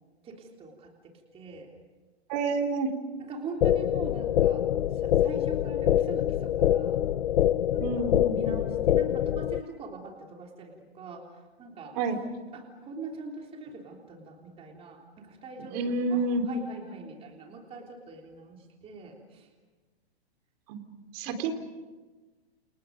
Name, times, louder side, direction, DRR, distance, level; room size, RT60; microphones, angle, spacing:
voice 1, 0.2-1.7 3.2-4.6 4.9-7.0 7.7-11.2 11.6-12.0 12.5-19.5 21.2-21.5, right 3 dB, 15° right, 1 dB, 3.5 m, -43 dB
voice 2, 2.3-2.9 7.8-8.6 12.0-12.2 15.7-16.4 20.7-20.8 21.1-21.5, right 3 dB, 35° right, 7 dB, 3.6 m, -29 dB
sound 1, 3.6-9.6, left 11 dB, 70° left, 0.8 m, -25 dB
29.5 x 29.0 x 5.3 m, 1.3 s
hypercardioid pair, 145°, 33 cm